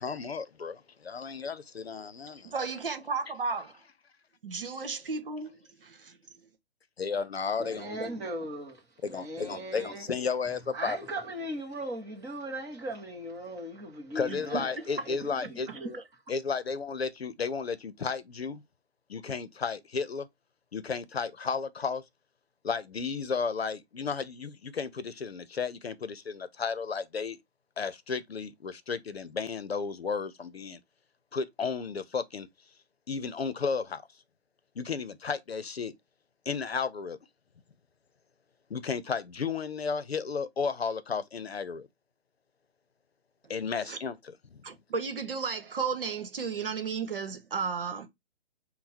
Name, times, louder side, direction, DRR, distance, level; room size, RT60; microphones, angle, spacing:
voice 1, 0.0-2.5 7.0-7.9 9.0-11.1 14.1-15.7 16.3-18.6 19.1-20.3 20.7-22.0 22.6-27.4 27.8-30.8 31.3-32.5 33.1-34.0 34.8-35.9 36.5-37.2 38.7-41.9 43.5-44.6, left 5 dB, 70° left, 0.7 m, -33 dB
voice 2, 2.4-3.8 4.4-6.2 14.3-14.6 43.9-44.0 44.6-48.1, right 5 dB, 60° right, 1.1 m, -34 dB
voice 3, 7.6-10.1 10.7-16.0, right 1 dB, 10° right, 0.8 m, -38 dB
5.6 x 2.3 x 4.2 m
figure-of-eight pair, 135°, 32 cm